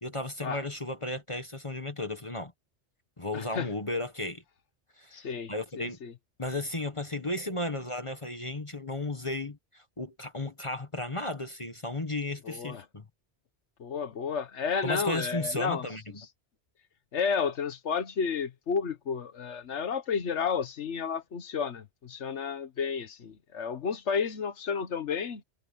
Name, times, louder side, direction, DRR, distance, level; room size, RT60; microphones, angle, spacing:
voice 1, 0.0-2.5 3.2-4.4 5.0-6.0 6.4-13.0 14.8-16.0, left 2 dB, 30° left, 1.4 m, -34 dB
voice 2, 3.3-3.7 5.1-6.1 12.4-12.8 13.8-15.9 16.2-16.3 17.1-25.4, left 6 dB, 85° left, 1.4 m, -32 dB
omnidirectional pair, 1.2 m